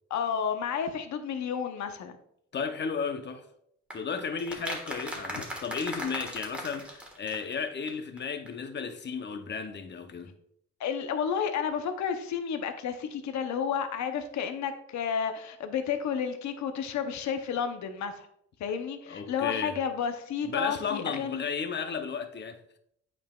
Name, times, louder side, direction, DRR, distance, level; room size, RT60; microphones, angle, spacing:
voice 1, 0.1-2.1 5.3-5.4 10.8-18.3 18.6-21.4, left 7 dB, 65° left, 0.8 m, -31 dB
voice 2, 2.5-3.4 3.9-10.3 19.1-19.8 20.5-22.8, left 5 dB, 35° left, 0.7 m, -34 dB
sound 1, 3.9-8.2 8.5-8.6, equal, 5° right, 1.4 m, -38 dB
8.4 x 5.3 x 2.3 m
cardioid pair, 90°, 30 cm